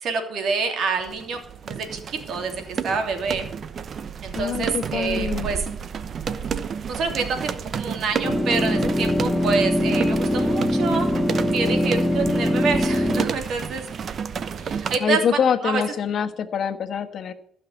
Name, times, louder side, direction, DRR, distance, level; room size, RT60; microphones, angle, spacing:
voice 1, 0.0-3.4 4.2-5.6 6.9-11.1 11.5-13.9 14.6-15.8, right 4 dB, 70° right, 4 dB, 3.0 m, -27 dB
sound 1, 1.0-15.0, right 7 dB, 55° right, 0.9 m, -31 dB
voice 2, 4.3-5.5 15.0-17.3, left 7 dB, 60° left, 8 dB, 1.3 m, -25 dB
sound 2, 8.2-13.3, left 1 dB, 15° left, 1.1 m, -22 dB
14.5 x 5.8 x 8.2 m, 0.69 s
cardioid pair, 90°, 0 cm